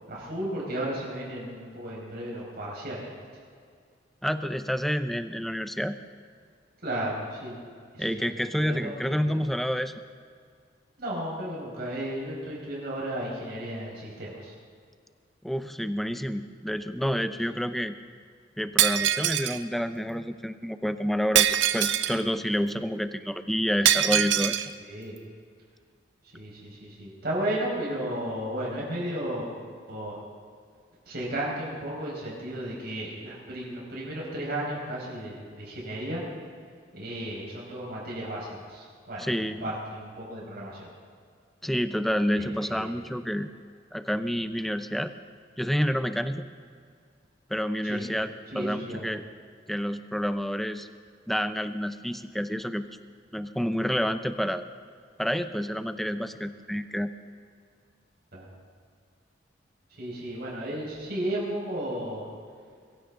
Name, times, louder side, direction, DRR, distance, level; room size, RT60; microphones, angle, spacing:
voice 1, 0.1-3.1 6.8-7.6 7.9-9.4 11.0-14.5 24.8-25.1 26.3-29.5 29.9-30.2 31.0-36.2 36.9-40.9 42.3-42.9 47.8-48.1 48.5-49.1 58.3-58.5 59.9-62.3, right 1 dB, 55° right, -4 dB, 5.1 m, -34 dB
voice 2, 4.2-6.0 8.0-9.9 15.4-17.9 18.6-21.5 21.7-24.6 39.2-39.7 41.6-43.5 43.9-45.1 45.6-46.4 47.5-49.2 49.7-50.9 51.3-52.8 53.3-54.7 55.2-57.1, equal, ahead, 10 dB, 0.5 m, -29 dB
Shatter, 18.8-19.6 21.3-22.2 23.8-24.7, right 11 dB, 75° right, 0.7 m, -23 dB
22.5 x 15.5 x 3.8 m, 2.1 s
head